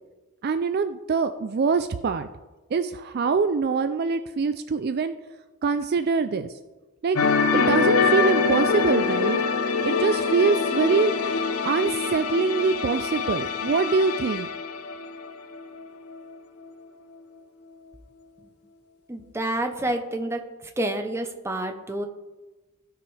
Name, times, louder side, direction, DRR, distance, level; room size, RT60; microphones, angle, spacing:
voice 1, 0.4-2.3 2.7-5.1 5.6-6.5 7.0-7.2 7.5-9.4 9.8-14.5, right 4 dB, 45° right, 10 dB, 0.3 m, -24 dB
sound 1, 7.2-15.8 16.1-16.3, left 5 dB, 70° left, 0.6 m, -24 dB
voice 2, 19.1-20.4 20.8-22.1, right 1 dB, 10° right, 5 dB, 0.7 m, -28 dB
16.0 x 6.1 x 3.3 m, 1.2 s
head